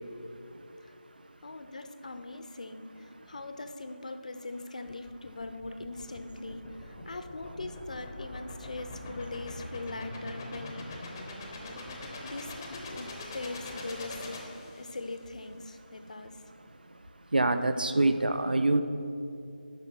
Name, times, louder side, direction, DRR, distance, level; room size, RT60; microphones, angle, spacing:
voice 1, 1.4-10.9 12.2-16.4, left 2 dB, 45° left, 8 dB, 0.6 m, -41 dB
sound 1, 4.9-15.2, left 2 dB, 15° left, 0.8 m, -43 dB
voice 2, 17.3-18.8, right 2 dB, 65° right, 9 dB, 0.6 m, -26 dB
8.9 x 5.7 x 6.0 m, 2.6 s
figure-of-eight pair, 160°, 5 cm